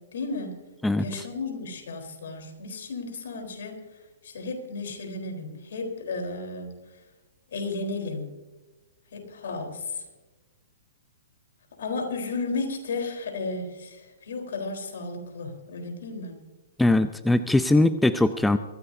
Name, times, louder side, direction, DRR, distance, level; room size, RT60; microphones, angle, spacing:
voice 1, 0.1-0.6 1.0-6.7 7.5-8.3 9.1-10.0 11.8-16.4, left 3 dB, 70° left, 4 dB, 4.0 m, -33 dB
voice 2, 16.8-18.6, left 2 dB, 5° left, 12 dB, 0.5 m, -21 dB
23.5 x 15.0 x 2.7 m, 1.2 s
hypercardioid pair, 125°, 0 cm